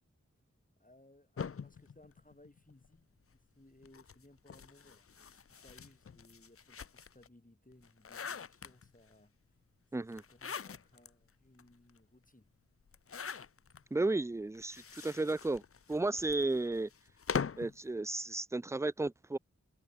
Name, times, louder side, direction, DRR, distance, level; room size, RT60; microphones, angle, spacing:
voice 1, 0.8-9.3 9.9-12.5 16.1-16.4, left 1 dB, 25° left, 5.9 m, -63 dB
sound 1, 1.4-3.0 3.8-7.3 7.7-9.1 10.1-11.1 11.6-11.7 11.9-12.0 12.9-13.8 14.6-17.8, left 6 dB, 50° left, 0.5 m, -42 dB
voice 2, 13.9-15.6 15.9-16.9 17.6-19.4, right 2 dB, 10° right, 0.4 m, -33 dB
wide cardioid pair, 40°, 30 cm